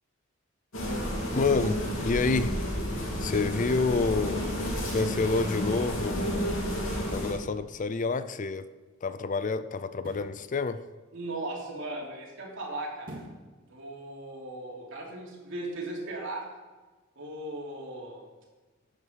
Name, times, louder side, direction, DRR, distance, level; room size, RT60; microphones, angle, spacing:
sound 1, 0.7-7.3, equal, 75° left, 3.3 m, -31 dB
voice 1, 1.3-2.5 3.2-4.4 4.9-6.5 7.1-8.7 9.0-10.8, left 4 dB, 40° left, 0.5 m, -28 dB
sound 2, 9.9-10.4 13.0-13.5 13.9-14.0, right 1 dB, 45° right, 2.2 m, -44 dB
voice 2, 11.1-13.1 13.7-16.5 17.1-18.2, right 2 dB, 65° right, 3.2 m, -37 dB
12.0 x 9.4 x 4.7 m
head